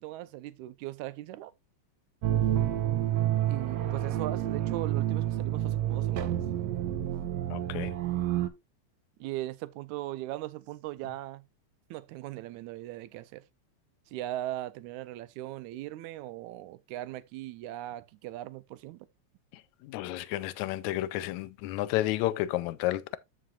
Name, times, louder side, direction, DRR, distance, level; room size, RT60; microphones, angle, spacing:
voice 1, 0.0-1.5 3.5-6.4 9.2-11.4 11.9-13.4 14.1-19.1, right 15 dB, 85° right, 2.0 m, -39 dB
sound 1, 2.2-8.5, right 12 dB, 70° right, 1.8 m, -29 dB
voice 2, 7.5-7.9 19.8-23.2, left 15 dB, 85° left, 1.9 m, -31 dB
14.0 x 4.9 x 2.3 m
omnidirectional pair, 3.3 m